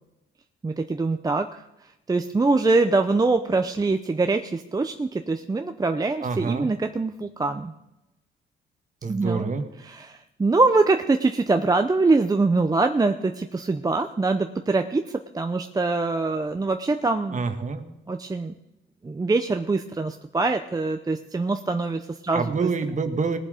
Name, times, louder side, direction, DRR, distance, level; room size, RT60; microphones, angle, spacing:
voice 1, 0.6-1.6 2.1-7.7 9.1-9.5 9.8-15.0 15.3-17.4 18.1-18.5 19.0-22.6, right 3 dB, 20° right, 6 dB, 0.6 m, -23 dB
voice 2, 6.2-6.7 9.0-9.6 17.3-17.8 22.3-23.4, right 4 dB, 40° right, 8 dB, 1.5 m, -26 dB
19.5 x 7.4 x 5.0 m, 0.93 s
cardioid pair, 90°, 20 cm